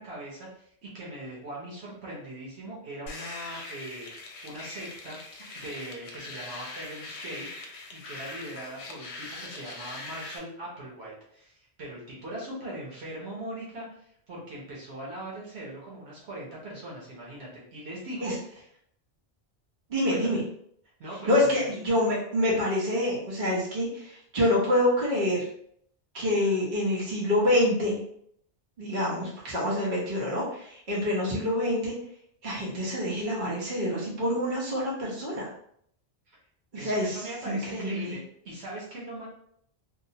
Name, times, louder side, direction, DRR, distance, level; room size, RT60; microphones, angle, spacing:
voice 1, 0.0-4.1 4.4-7.5 7.9-18.7 20.1-20.4 21.0-21.7 36.3-36.4 36.7-38.2 38.4-39.3, right 1 dB, 80° right, -5 dB, 1.1 m, -40 dB
sound 1, 3.1-10.4, left 2 dB, 80° left, 0.9 m, -41 dB
voice 2, 19.9-20.4 21.3-25.5 26.1-28.0 28.8-31.9 32.4-35.4 36.8-38.2, left 1 dB, 50° right, -6 dB, 1.1 m, -26 dB
2.9 x 2.0 x 2.7 m, 0.68 s
omnidirectional pair, 1.1 m